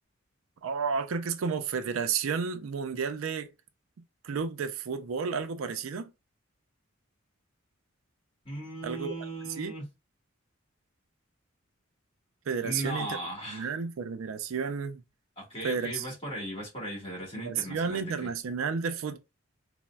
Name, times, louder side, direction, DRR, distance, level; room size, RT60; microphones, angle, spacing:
voice 1, 0.6-3.5 4.2-6.1 8.8-9.1 9.6-9.7 12.5-13.1 13.5-15.0 15.6-16.1 17.3-19.2, right 6 dB, 90° right, 0.4 m, -32 dB
voice 2, 8.4-9.9 12.6-13.7 15.4-18.3, right 1 dB, 30° left, 1.6 m, -37 dB
4.0 x 2.0 x 2.2 m
head